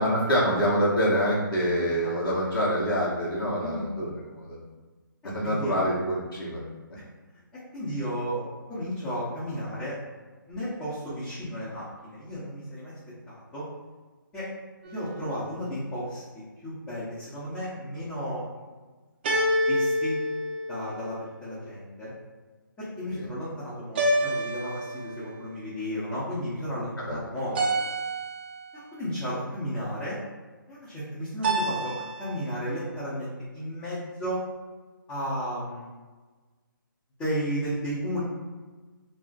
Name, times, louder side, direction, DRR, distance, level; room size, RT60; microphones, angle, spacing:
voice 1, 0.0-4.6 5.2-6.6 23.1-23.3 27.0-27.2, equal, 85° left, -7 dB, 1.0 m, -26 dB
voice 2, 5.4-5.8 6.9-7.0 7.5-10.0 10.5-13.6 14.3-14.5 14.8-18.4 19.6-20.1 20.7-22.1 22.8-27.8 28.7-30.2 30.7-34.4 35.1-35.9 37.2-38.2, equal, 10° left, -13 dB, 0.6 m, -33 dB
sound 1, 14.8-15.5 19.2-21.3 23.9-25.4 27.5-28.7 31.4-32.4, right 1 dB, 30° right, 0.4 m, -28 dB
2.4 x 2.0 x 3.9 m, 1.3 s
hypercardioid pair, 155°, 12 cm